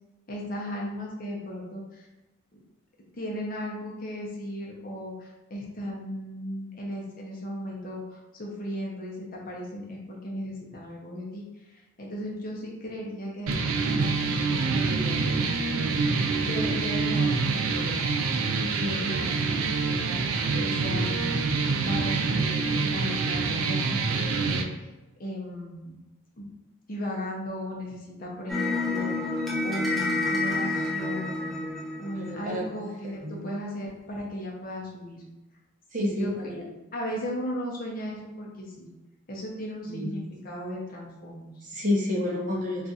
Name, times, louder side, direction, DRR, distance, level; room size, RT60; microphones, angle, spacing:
voice 1, 0.3-2.1 2.5-2.6 3.2-15.7 16.4-18.0 18.8-20.2 20.5-21.3 21.9-24.9 25.2-26.0 26.4-26.5 26.9-31.6 32.0-35.2 36.0-36.6 36.9-38.9 39.3-41.6, left 1 dB, 40° left, -2 dB, 0.6 m, -36 dB
sound 1, 13.5-24.6, right 4 dB, 80° right, 0.4 m, -26 dB
sound 2, 28.5-32.8, left 2 dB, ahead, 0.5 m, -29 dB
voice 2, 32.2-32.7 33.2-33.4 35.9-36.6 39.9-40.1 41.6-42.9, left 1 dB, 35° right, -3 dB, 0.6 m, -29 dB
2.4 x 2.4 x 4.0 m, 1.0 s
head